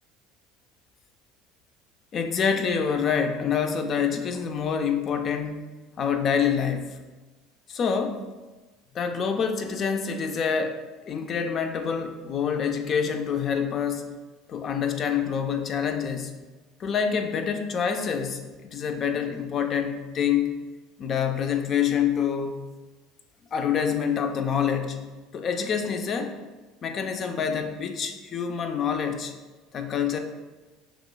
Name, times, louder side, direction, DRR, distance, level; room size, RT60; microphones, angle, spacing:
voice 1, 2.1-7.0 7.7-8.2 8.9-10.8 11.1-14.1 14.5-16.3 16.8-20.5 21.0-22.6 23.5-26.3 26.8-29.3 29.7-30.2, left 7 dB, 45° left, 6 dB, 0.5 m, -26 dB
6.1 x 3.1 x 2.2 m, 1.2 s
hypercardioid pair, 75°, 0 cm